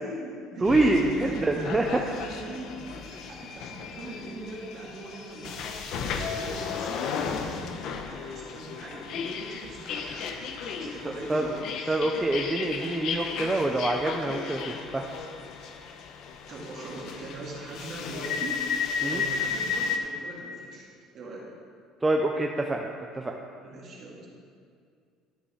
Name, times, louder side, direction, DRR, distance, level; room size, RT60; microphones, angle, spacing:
voice 1, 0.0-1.7 2.0-12.0 16.5-20.9 21.1-21.5 23.6-24.3, right 1 dB, 35° right, -3 dB, 2.0 m, -41 dB
voice 2, 0.6-2.0 11.3-11.4 11.9-15.1 19.0-19.2 22.0-22.9 23.1-23.4, right 2 dB, 10° right, 2 dB, 0.4 m, -26 dB
sound 1, 0.7-20.0, left 6 dB, 50° left, 0.8 m, -34 dB
13.0 x 5.2 x 4.9 m, 2.2 s
cardioid pair, 170°, 0 cm